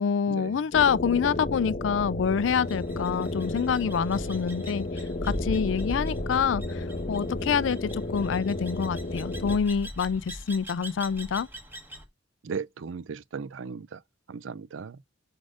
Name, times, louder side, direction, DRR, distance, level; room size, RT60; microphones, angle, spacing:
voice 1, 0.0-11.5, left 6 dB, 70° left, 0.4 m, -27 dB
sound 1, 0.7-9.6, left 2 dB, 45° left, 0.9 m, -33 dB
sound 2, 2.5-12.0, equal, 10° right, 1.5 m, -39 dB
voice 2, 12.4-14.0 14.3-15.0, right 5 dB, 80° right, 0.5 m, -36 dB
4.9 x 4.1 x 4.8 m
head